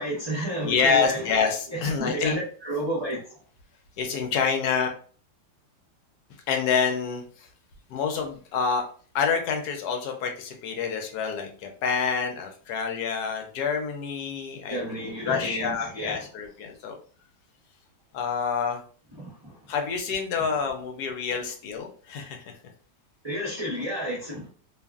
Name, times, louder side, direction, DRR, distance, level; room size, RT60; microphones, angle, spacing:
voice 1, 0.0-1.3 1.7-3.4 14.7-16.2 19.2-19.6 23.2-24.5, right 1 dB, 40° right, 0.3 m, -31 dB
voice 2, 0.6-2.4 4.0-4.9 6.5-7.5 7.9-8.8 9.1-17.0 18.1-18.8 19.7-22.5, left 6 dB, 75° left, 1.1 m, -27 dB
2.8 x 2.4 x 2.3 m
omnidirectional pair, 1.8 m